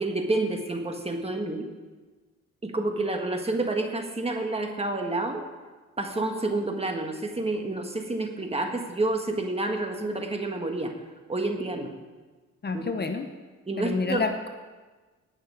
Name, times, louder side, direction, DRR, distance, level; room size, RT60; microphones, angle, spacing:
voice 1, 0.0-1.7 2.6-5.4 6.0-10.9 11.3-11.9 12.7-12.9 13.7-14.2, right 2 dB, 20° right, 4 dB, 1.5 m, -29 dB
voice 2, 12.6-13.3 13.8-14.5, left 4 dB, 35° left, 6 dB, 0.9 m, -28 dB
19.0 x 6.7 x 4.8 m, 1.3 s
cardioid pair, 90°, 30 cm